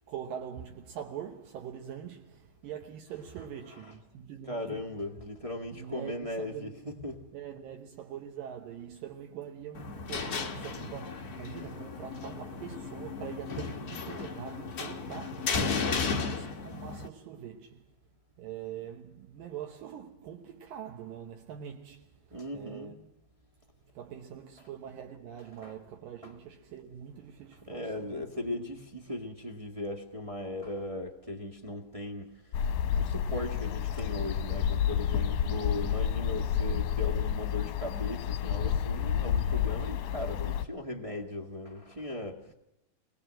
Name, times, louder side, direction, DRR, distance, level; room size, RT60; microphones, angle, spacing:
voice 1, 0.1-4.9 5.7-6.8 7.3-17.9 18.4-23.0 23.9-28.7 32.8-33.0, right 9 dB, 80° right, 2.9 m, -44 dB
voice 2, 4.5-7.2 22.3-22.9 25.6-25.8 26.2-26.3 27.7-32.5 33.0-42.5, left 2 dB, 35° right, 0.5 m, -38 dB
sound 1, 9.7-17.1, left 4 dB, 50° left, 1.1 m, -34 dB
sound 2, 32.5-40.6, left 9 dB, 70° left, 2.2 m, -30 dB
25.5 x 20.0 x 7.6 m
omnidirectional pair, 4.0 m